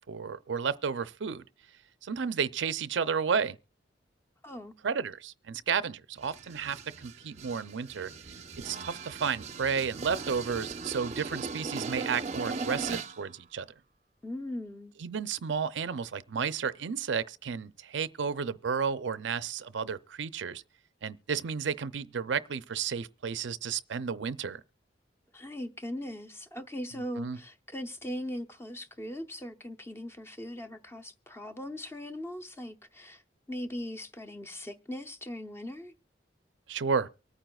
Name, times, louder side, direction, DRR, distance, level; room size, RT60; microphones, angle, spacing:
voice 1, 0.1-1.5 2.0-3.6 4.8-8.1 8.6-13.7 15.0-20.6 21.0-24.6 27.2-27.4 36.7-37.1, right 6 dB, 85° right, 0.5 m, -32 dB
voice 2, 4.4-4.7 14.2-14.9 25.3-33.2 33.5-35.9, left 1 dB, 15° left, 0.6 m, -39 dB
sound 1, 6.2-13.2, right 4 dB, 40° right, 0.6 m, -39 dB
24.0 x 9.0 x 2.3 m
head